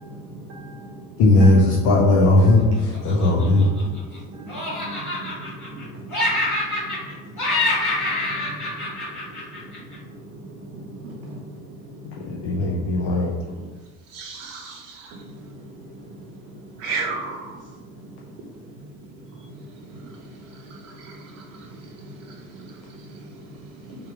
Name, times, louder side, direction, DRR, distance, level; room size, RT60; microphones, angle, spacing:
voice 1, 0.0-1.0 3.5-3.9 4.3-6.4 6.9-7.0 8.0-8.6 8.8-8.9 9.3-9.4 10.2-11.4 12.4-12.5 16.1-16.2 20.0-20.1 22.6-22.7, right 1 dB, 35° right, -1 dB, 0.6 m, -39 dB
voice 2, 1.2-3.7 12.0-13.3, left 2 dB, 40° left, -2 dB, 0.6 m, -17 dB
Laughter, 2.9-4.2 4.5-5.8 6.1-7.1 7.4-10.0, left 2 dB, 75° left, 1.5 m, -26 dB
voice 3, 14.1-15.2 16.8-17.6 20.7-21.4, right 4 dB, 60° right, 1 dB, 0.9 m, -32 dB
3.5 x 2.8 x 3.5 m, 1.4 s
figure-of-eight pair, 70°, 44 cm